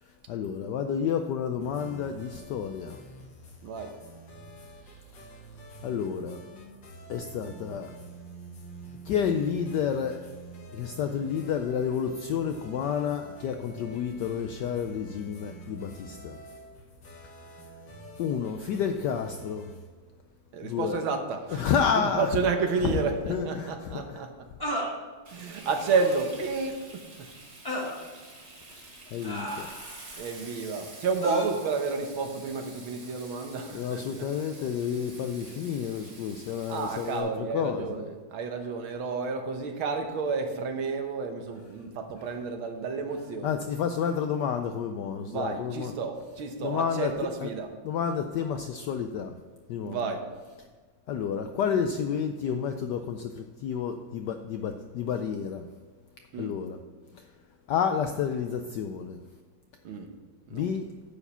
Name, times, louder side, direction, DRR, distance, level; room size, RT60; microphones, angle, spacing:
voice 1, 0.0-3.0 5.8-6.4 7.1-7.9 9.0-10.2 10.7-16.4 18.2-19.7 20.6-21.0 21.5-22.4 22.8-23.0 23.3-24.2 28.7-28.8 29.1-29.7 33.2-33.3 33.7-37.9 43.4-45.9 46.6-47.1 47.4-47.5 47.8-49.3 49.7-50.0 50.6-50.7 51.1-55.7 56.4-56.8 57.1-57.3 57.7-59.2 60.5-60.9, left 7 dB, 80° left, 6 dB, 0.9 m, -30 dB
sound 1, 1.6-19.9, right 2 dB, 60° left, 2.0 m, -47 dB
voice 2, 3.6-3.9 20.5-21.7 22.0-24.3 25.3-27.1 30.2-34.0 36.7-43.6 45.3-47.7 49.8-50.3 56.3-56.5 59.9-60.1 60.5-60.6, right 4 dB, 75° right, 5 dB, 1.8 m, -31 dB
sound 2, 22.7-22.8 24.6-24.9 25.9-26.2 27.6-28.0 29.2-30.0 31.2-31.4, equal, 10° left, 1.2 m, -33 dB
Frying (food), 25.2-37.2, right 2 dB, 35° right, 1.5 m, -48 dB
9.8 x 4.8 x 6.8 m, 1.4 s
omnidirectional pair, 2.3 m